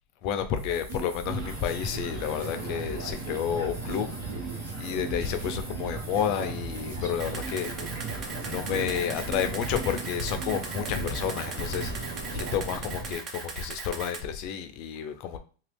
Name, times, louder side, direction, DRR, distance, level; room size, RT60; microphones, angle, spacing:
voice 1, 0.2-4.1 4.5-7.7 8.5-15.4, left 8 dB, 45° left, 0.5 m, -31 dB
sound 1, 0.6-12.5, right 3 dB, 90° right, 1.0 m, -40 dB
sound 2, 1.2-13.2, right 3 dB, 50° right, 1.2 m, -38 dB
Camera, 7.2-14.2, right 4 dB, 30° right, 0.6 m, -39 dB
3.0 x 2.3 x 3.3 m
supercardioid pair, 145°, 0 cm